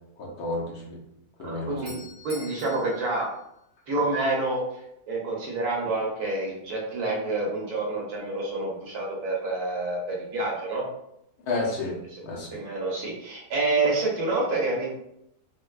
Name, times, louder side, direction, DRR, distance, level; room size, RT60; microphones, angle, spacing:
voice 1, 0.2-1.0 1.4-2.0 11.4-12.0 12.2-12.6, left 2 dB, 75° left, -3 dB, 1.3 m, -31 dB
voice 2, 1.4-1.9 2.2-3.3 3.9-4.6 5.1-10.8 12.5-14.9, right 2 dB, 75° right, -3 dB, 1.4 m, -28 dB
Doorbell, 1.7-4.3, left 2 dB, 50° left, 1.0 m, -48 dB
4.3 x 2.2 x 2.3 m, 0.78 s
omnidirectional pair, 1.7 m